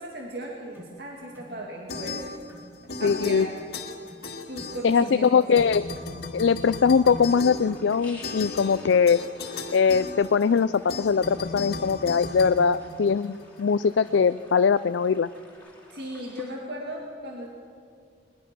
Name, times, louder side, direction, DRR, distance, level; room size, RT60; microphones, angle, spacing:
voice 1, 0.0-2.2 3.0-3.6 4.5-5.5 15.9-17.5, right 1 dB, 60° right, -1 dB, 2.3 m, -36 dB
sound 1, 0.7-1.0 1.3-1.6 1.9-2.1 2.5-2.7 3.0-3.2 3.6-3.8 4.1-4.3 4.6-4.8 5.0-5.2 5.5-5.7 6.0-15.6, equal, 10° right, 4.8 m, -51 dB
sound 2, 1.9-2.6 2.9-5.3 5.5-13.4, left 3 dB, 55° left, 2.0 m, -36 dB
voice 2, 3.0-3.5 4.8-5.8 6.3-9.2 9.7-15.3, left 6 dB, 85° left, 13 dB, 0.4 m, -21 dB
sound 3, 7.1-16.5, left 2 dB, 10° left, 3.2 m, -52 dB
21.5 x 21.0 x 6.1 m, 2.2 s
head